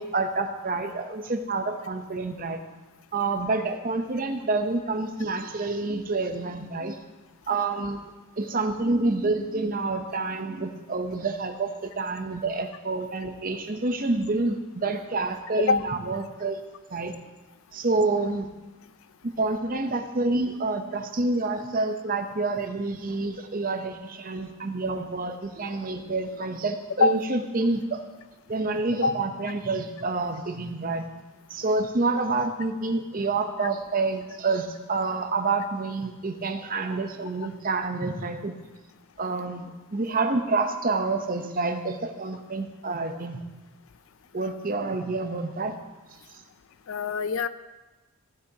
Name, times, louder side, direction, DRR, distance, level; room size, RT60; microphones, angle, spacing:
voice 1, 0.0-2.6 3.1-7.0 7.5-8.0 8.4-16.6 16.9-17.2 17.7-18.5 19.4-28.0 28.5-31.1 31.5-38.5 39.2-43.4 44.3-45.8, right 3 dB, 40° right, 6 dB, 0.7 m, -28 dB
voice 2, 46.9-47.5, left 4 dB, 60° left, 14 dB, 0.4 m, -23 dB
15.5 x 7.7 x 2.8 m, 1.2 s
head